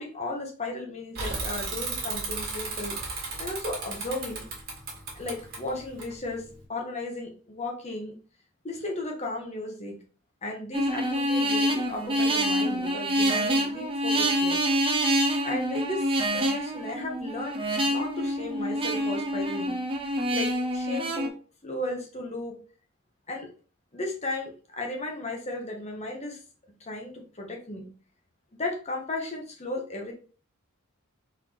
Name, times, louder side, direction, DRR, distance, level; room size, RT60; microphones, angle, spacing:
voice 1, 0.0-3.0 3.4-4.5 5.1-8.1 8.6-10.0 10.4-14.6 15.4-17.6 17.9-19.8 20.3-21.3 21.6-22.6 23.3-23.5 23.9-26.4 26.8-27.9 28.6-30.1, left 2 dB, 30° left, 1 dB, 1.1 m, -35 dB
Bicycle / Mechanisms, 1.1-6.6, right 3 dB, 45° right, 1.6 m, -35 dB
sound 1, 10.7-21.3, equal, 25° right, 0.6 m, -26 dB
4.0 x 3.8 x 3.2 m, 0.38 s
head